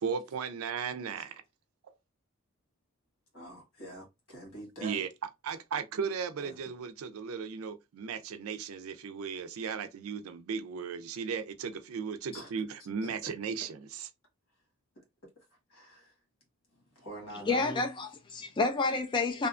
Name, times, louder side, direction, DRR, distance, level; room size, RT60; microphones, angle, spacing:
voice 1, 0.0-1.4 4.8-14.1, right 6 dB, 90° right, 0.4 m, -36 dB
voice 2, 3.3-5.0 12.3-12.5 13.0-13.1 15.7-16.0 17.0-17.8, right 1 dB, 75° left, 1.4 m, -44 dB
voice 3, 17.3-19.5, left 3 dB, 25° left, 0.4 m, -29 dB
2.7 x 2.2 x 2.4 m
head